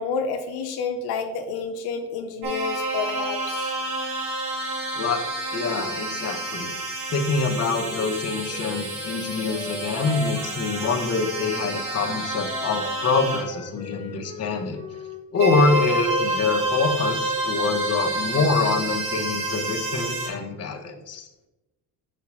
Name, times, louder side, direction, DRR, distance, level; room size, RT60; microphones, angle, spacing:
voice 1, 0.0-3.7, left 5 dB, 80° left, 4 dB, 0.8 m, -29 dB
sound 1, 2.4-13.4 15.4-20.3, right 2 dB, 65° right, 2.0 m, -29 dB
voice 2, 5.5-6.7 7.1-14.8 15.3-21.2, left 4 dB, 40° left, 3 dB, 1.1 m, -25 dB
Wind instrument woodwind instrument, 7.6-11.1 11.4-15.2, left 2 dB, 15° left, 0.9 m, -39 dB
5.6 x 4.3 x 4.8 m, 1.0 s
cardioid pair, 95°, 37 cm